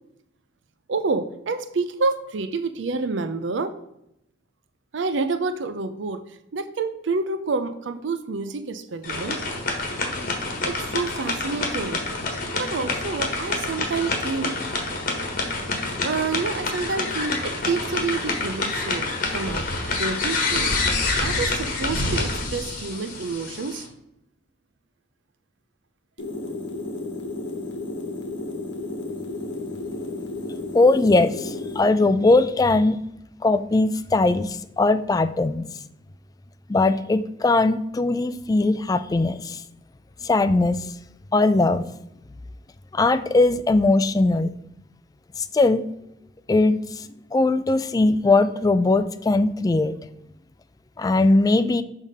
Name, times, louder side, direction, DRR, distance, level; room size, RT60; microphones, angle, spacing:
voice 1, 0.9-3.8 4.9-6.2 6.5-9.4 10.6-12.0 12.5-14.6 16.0-19.6 20.0-20.7 21.2-23.9, right 4 dB, 75° right, 10 dB, 0.5 m, -28 dB
sound 1, 9.0-23.9, left 3 dB, 50° left, 1.4 m, -27 dB
sound 2, 26.2-31.8, left 2 dB, 80° left, 1.1 m, -32 dB
voice 2, 30.7-33.0 33.4-35.6 36.7-39.6 40.2-40.9 41.3-41.9 42.9-44.5 45.4-45.8 46.5-47.1 47.3-49.9 51.0-51.8, left 2 dB, 20° left, 11 dB, 0.3 m, -20 dB
6.4 x 3.6 x 5.4 m, 0.80 s
head